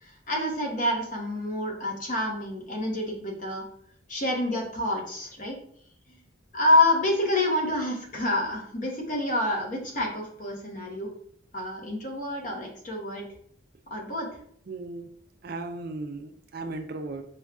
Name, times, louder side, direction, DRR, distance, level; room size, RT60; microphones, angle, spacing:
voice 1, 0.0-3.6 4.1-5.6 6.5-11.1 11.5-13.2 13.9-14.3, left 1 dB, 40° left, 0 dB, 0.8 m, -27 dB
voice 2, 14.7-15.1 15.4-17.2, right 2 dB, 50° right, 7 dB, 0.4 m, -36 dB
5.1 x 2.3 x 2.3 m, 0.64 s
head